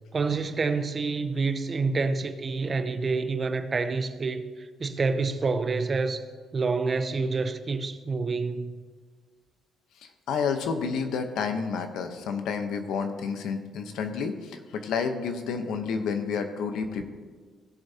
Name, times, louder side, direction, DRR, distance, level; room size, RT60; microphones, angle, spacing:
voice 1, 0.1-4.4 4.8-6.2 6.5-8.8, right 4 dB, 35° right, 0.7 m, -27 dB
voice 2, 10.3-17.1, left 5 dB, 80° left, 0.9 m, -30 dB
15.5 x 7.0 x 2.8 m
cardioid pair, 90°, 0 cm